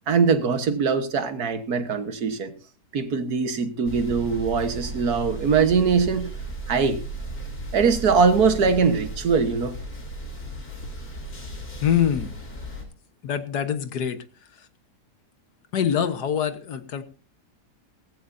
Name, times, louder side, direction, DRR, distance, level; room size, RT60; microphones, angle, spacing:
voice 1, 0.1-2.5 2.9-6.3 6.7-7.0 7.7-9.8, right 5 dB, 70° right, 1.9 m, -22 dB
sound 1, 3.8-12.8, right 1 dB, 65° left, 3.8 m, -35 dB
voice 2, 11.8-12.3 13.2-14.2 15.7-17.0, left 9 dB, 80° left, 1.8 m, -24 dB
18.5 x 15.0 x 2.7 m
omnidirectional pair, 1.7 m